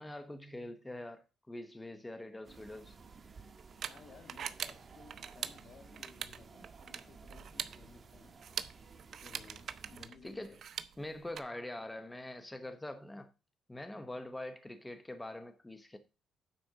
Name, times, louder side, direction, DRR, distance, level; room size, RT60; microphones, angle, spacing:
voice 1, 0.0-3.0 10.2-10.6 11.0-13.3 13.7-16.0, left 1 dB, 10° left, 1.0 m, -44 dB
sound 1, 2.4-10.1, right 4 dB, 35° right, 1.4 m, -55 dB
sound 2, 2.7-11.4, right 8 dB, 60° right, 0.7 m, -44 dB
voice 2, 3.8-8.4 9.2-10.6 11.0-11.2, left 5 dB, 55° left, 1.7 m, -58 dB
9.4 x 4.3 x 6.6 m
cardioid pair, 90°, 0 cm